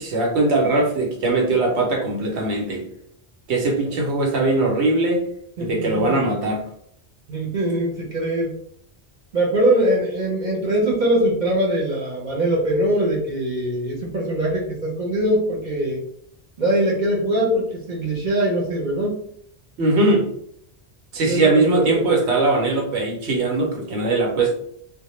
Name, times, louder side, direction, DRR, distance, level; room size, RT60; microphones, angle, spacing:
voice 1, 0.0-2.8 3.5-5.3 5.6-6.6 19.8-20.3 21.1-24.5, right 2 dB, 90° right, 0 dB, 1.0 m, -20 dB
voice 2, 5.6-6.2 7.3-8.5 9.3-16.0 16.6-19.2 21.3-22.0, right 1 dB, 50° right, -3 dB, 0.7 m, -22 dB
2.1 x 2.1 x 2.9 m, 0.68 s
omnidirectional pair, 1.1 m